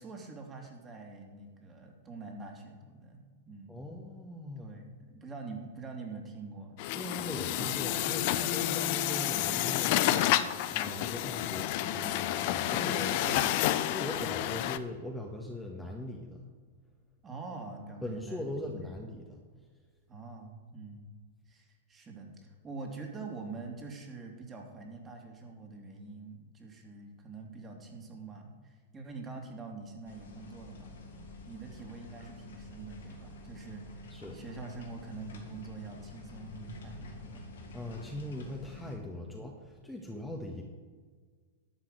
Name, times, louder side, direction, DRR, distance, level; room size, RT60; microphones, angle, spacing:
voice 1, 0.0-3.8 4.6-6.8 7.4-8.3 13.2-13.9 17.2-18.7 20.1-21.0 21.5-30.9 31.5-34.0 34.3-37.4 39.1-39.3, right 4 dB, 25° right, 2 dB, 2.8 m, -45 dB
voice 2, 3.7-4.7 6.9-13.2 13.9-16.4 18.0-19.4 34.1-34.4 37.7-40.6, left 1 dB, 5° left, 0 dB, 1.5 m, -40 dB
Truck, 6.8-14.8, left 13 dB, 50° left, 0.7 m, -30 dB
sound 1, 30.0-39.0, left 2 dB, 75° left, 2.6 m, -48 dB
12.0 x 5.8 x 8.0 m, 1.5 s
figure-of-eight pair, 100°, 0 cm